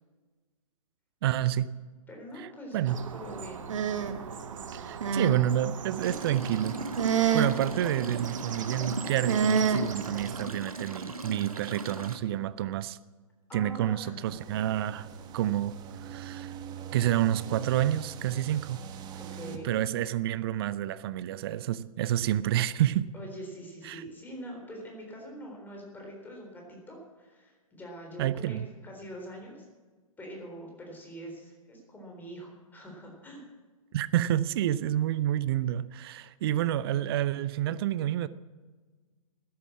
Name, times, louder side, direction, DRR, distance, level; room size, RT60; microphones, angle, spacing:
voice 1, 1.2-1.7 2.4-2.5 2.7-3.0 4.7-6.8 7.1-13.0 13.5-15.1 15.3-16.5 16.9-18.8 19.6-23.1 23.8-24.0 28.2-28.7 33.9-38.3, right 12 dB, 45° right, 0.6 m, -29 dB
voice 2, 2.1-3.7 13.5-14.1 19.2-19.7 23.1-29.7 30.2-33.5, equal, 10° left, 3.9 m, -44 dB
sound 1, 2.9-10.5, right 6 dB, 60° right, 1.4 m, -31 dB
sound 2, 6.0-12.2, right 3 dB, 85° right, 1.6 m, -38 dB
sound 3, 14.2-19.6, right 8 dB, 25° right, 1.3 m, -43 dB
13.5 x 10.5 x 7.4 m
figure-of-eight pair, 120°, 18 cm